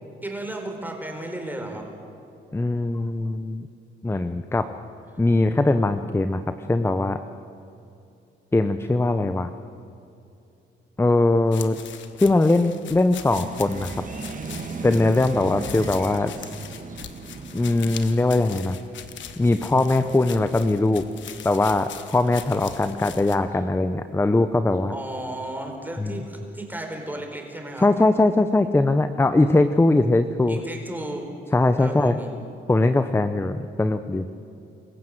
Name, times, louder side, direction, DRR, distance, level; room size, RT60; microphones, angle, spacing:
voice 1, 0.2-1.9 24.9-27.9 30.5-31.3 31.8-32.3, right 1 dB, 10° right, 2 dB, 4.5 m, -34 dB
voice 2, 2.5-3.7 4.0-4.7 5.2-6.4 6.7-7.2 8.5-9.5 11.0-11.8 12.2-13.9 14.8-16.3 17.5-18.8 19.4-21.0 21.4-24.9 26.0-26.1 27.8-30.6 31.5-32.2 32.7-34.2, left 2 dB, 10° left, 10 dB, 0.8 m, -21 dB
sound 1, 11.5-23.4, left 9 dB, 70° left, 1.4 m, -41 dB
sound 2, 13.3-24.2 24.7-25.1 25.5-25.6, right 4 dB, 40° right, 2.1 m, -39 dB
26.5 x 14.5 x 7.9 m, 2.7 s
cardioid pair, 90°, 20 cm